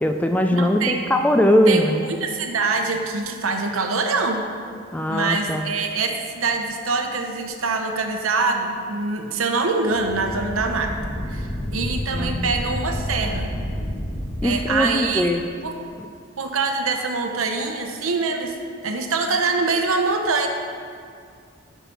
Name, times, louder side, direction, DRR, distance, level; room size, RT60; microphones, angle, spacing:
voice 1, 0.0-2.0 4.9-5.7 12.1-12.5 14.4-15.4, equal, 5° left, 5 dB, 0.3 m, -20 dB
voice 2, 0.5-1.1 1.7-1.8 2.2-4.4 5.1-10.9 11.3-13.5 14.4-15.3 15.6-15.7 16.4-18.5 18.8-20.5, right 4 dB, 85° right, 4 dB, 0.9 m, -24 dB
sound 1, 9.8-14.7, equal, 25° left, 1.2 m, -29 dB
6.9 x 5.9 x 5.9 m, 2.3 s
head